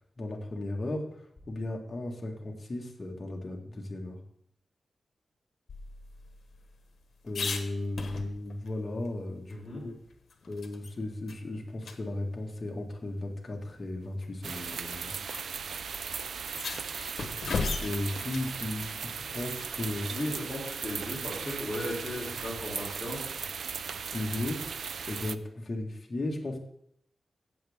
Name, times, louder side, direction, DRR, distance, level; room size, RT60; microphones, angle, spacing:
voice 1, 0.2-4.2 7.2-9.9 10.5-15.1 16.9-17.1 17.5-20.1 24.1-24.7 25.0-26.6, left 2 dB, 35° left, 0 dB, 1.7 m, -36 dB
sound 1, 5.7-8.7 9.0-9.1 9.5-10.9 11.3-11.4 11.8-12.0 13.0-13.1 14.0-14.3 15.3-15.4 15.7-15.8 16.3-18.5 20.8-21.3, left 4 dB, 75° left, 1.1 m, -37 dB
voice 2, 9.5-9.8 20.1-23.2, left 1 dB, 20° left, -6 dB, 3.5 m, -36 dB
sound 2, 14.4-25.4, right 6 dB, 85° right, 0.4 m, -37 dB
15.0 x 8.2 x 3.6 m, 0.70 s
wide cardioid pair, 130°, 0 cm